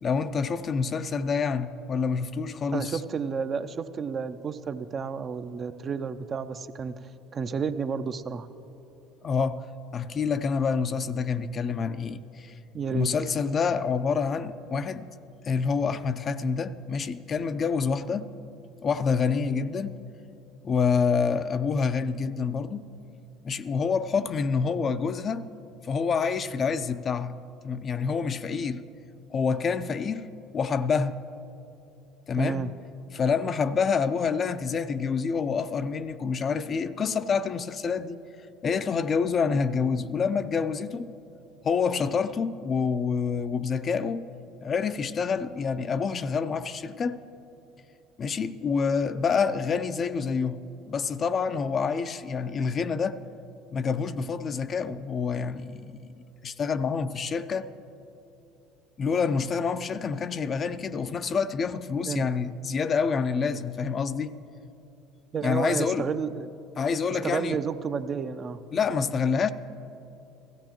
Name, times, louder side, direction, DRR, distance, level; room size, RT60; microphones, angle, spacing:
voice 1, 0.0-3.0 9.2-9.7 9.9-12.5 12.9-15.1 15.4-18.3 18.8-20.0 20.6-22.8 23.4-25.5 25.8-27.4 27.6-28.8 29.3-31.2 32.3-32.7 33.1-38.2 38.6-41.1 41.6-44.3 44.6-47.2 48.2-53.2 53.7-57.7 59.0-64.3 65.4-66.1 66.8-67.6 68.7-69.5, left 5 dB, 40° left, 0.4 m, -27 dB
voice 2, 2.7-6.9 7.3-8.5 12.7-13.1 32.4-32.7 39.5-39.6 62.0-62.2 65.3-66.5 67.2-68.6, right 6 dB, 40° right, 0.5 m, -31 dB
16.0 x 15.0 x 3.0 m
hypercardioid pair, 75°, 0 cm